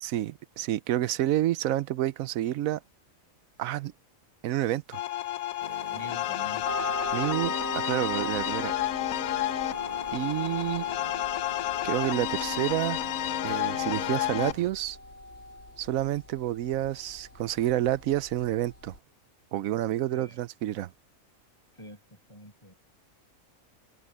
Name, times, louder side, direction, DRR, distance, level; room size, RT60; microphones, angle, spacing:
voice 1, 0.0-2.8 3.6-3.9 4.4-5.0 7.1-8.7 10.1-10.9 11.8-13.0 13.4-15.0 15.8-19.0 19.5-20.9, right 13 dB, 85° right, 1.0 m, -29 dB
sound 1, 4.9-14.5, left 14 dB, 85° left, 1.0 m, -31 dB
sound 2, 5.6-14.7, right 3 dB, 30° right, 1.8 m, -46 dB
voice 2, 5.9-6.6 10.9-11.1 20.1-20.4 21.8-22.7, equal, 20° left, 7.7 m, -46 dB
sound 3, 6.6-19.0, left 1 dB, 55° left, 5.6 m, -40 dB
omnidirectional pair, 1.4 m